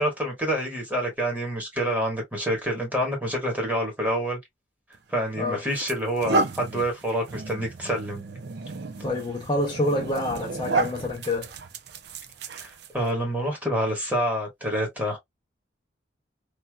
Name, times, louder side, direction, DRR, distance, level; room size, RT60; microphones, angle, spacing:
voice 1, 0.0-4.4 5.1-8.2 12.5-15.2, equal, 10° right, 1.4 m, -27 dB
sound 1, 4.9-5.1 5.7-13.1, right 3 dB, 60° right, 0.5 m, -32 dB
voice 2, 9.0-11.5, left 1 dB, 25° left, 0.6 m, -27 dB
3.3 x 2.7 x 2.2 m
head